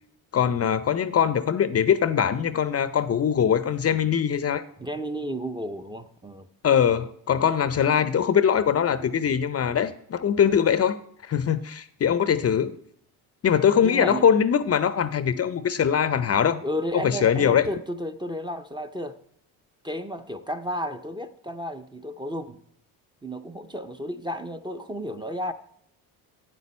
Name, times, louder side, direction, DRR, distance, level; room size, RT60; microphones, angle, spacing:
voice 1, 0.3-4.6 6.6-11.0 11.2-12.7 13.4-16.6 17.0-17.7, left 8 dB, 35° left, 14 dB, 0.5 m, -22 dB
voice 2, 4.8-6.5 13.8-14.2 16.6-19.2 19.8-22.6 23.2-25.5, equal, 10° right, 7 dB, 0.6 m, -32 dB
9.0 x 8.1 x 4.2 m, 0.69 s
supercardioid pair, 80°, 42 cm